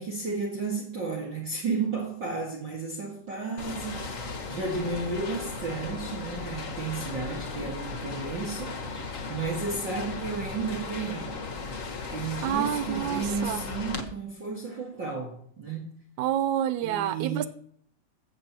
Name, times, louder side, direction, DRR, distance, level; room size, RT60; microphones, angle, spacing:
voice 1, 0.0-11.4 12.1-15.9 16.8-17.5, right 4 dB, 40° right, 2.1 m, -33 dB
sound 1, 3.6-14.0, left 4 dB, 85° left, 0.7 m, -36 dB
voice 2, 12.4-13.6 16.2-17.5, right 11 dB, 75° right, 2.0 m, -28 dB
15.5 x 12.5 x 3.0 m
omnidirectional pair, 3.7 m